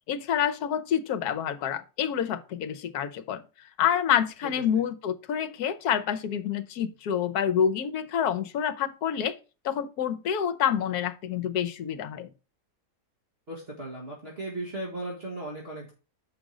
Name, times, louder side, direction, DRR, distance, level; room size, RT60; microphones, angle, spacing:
voice 1, 0.1-3.4 3.8-9.4 9.6-12.3, left 9 dB, 70° left, 1.2 m, -27 dB
voice 2, 13.5-15.9, right 1 dB, 35° right, 2.1 m, -36 dB
7.0 x 5.1 x 4.9 m
omnidirectional pair, 1.8 m